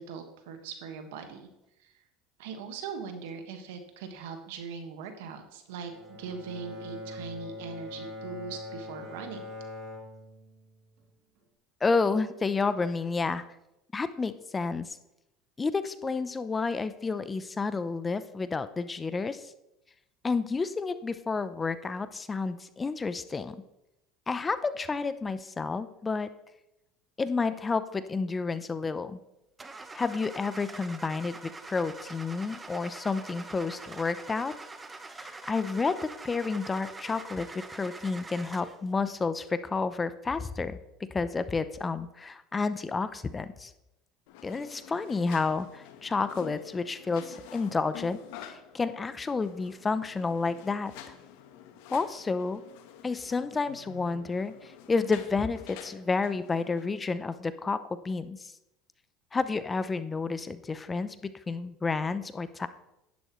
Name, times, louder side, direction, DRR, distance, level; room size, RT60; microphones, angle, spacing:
voice 1, 0.0-1.5 1.8-1.9 2.4-9.5, right 6 dB, 80° right, 6 dB, 1.6 m, -40 dB
Bowed string instrument, 5.8-11.0, left 2 dB, 60° right, 2.8 m, -43 dB
voice 2, 11.8-13.4 13.9-14.9 15.6-19.5 20.2-23.6 24.3-26.3 27.2-29.2 29.9-34.5 35.2-36.0 36.2-40.8 41.1-43.7 44.4-50.9 51.9-52.6 53.0-58.5 59.3-62.7, left 4 dB, 20° left, 13 dB, 0.6 m, -30 dB
Car / Engine starting, 29.6-38.9, right 3 dB, 15° right, 0.8 m, -44 dB
sound 1, 44.3-56.9, left 10 dB, 75° left, 1.2 m, -48 dB
10.5 x 10.0 x 3.1 m, 0.89 s
supercardioid pair, 95°, 0 cm